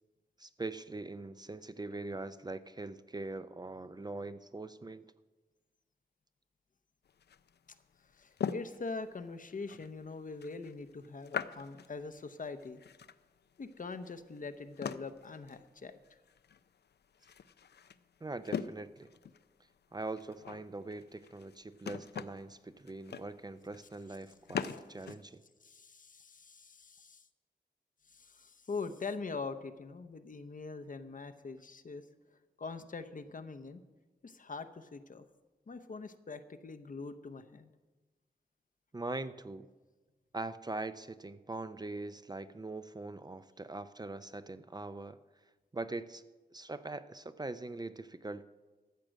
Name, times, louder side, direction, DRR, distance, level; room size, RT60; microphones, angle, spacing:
voice 1, 0.4-5.0 18.2-19.1 19.9-25.4 38.9-39.7 40.3-45.2 45.7-46.2 46.5-48.5, right 2 dB, 25° right, 12 dB, 0.4 m, -42 dB
sound 1, 7.1-25.2, left 7 dB, 85° left, 0.4 m, -43 dB
voice 2, 8.1-12.8 13.6-15.9 24.6-24.8 25.6-27.2 28.1-32.1 32.6-33.8 34.2-35.2 35.7-37.7, left 4 dB, 55° left, 10 dB, 0.7 m, -43 dB
13.5 x 7.5 x 6.3 m, 1.3 s
wide cardioid pair, 80°, 17 cm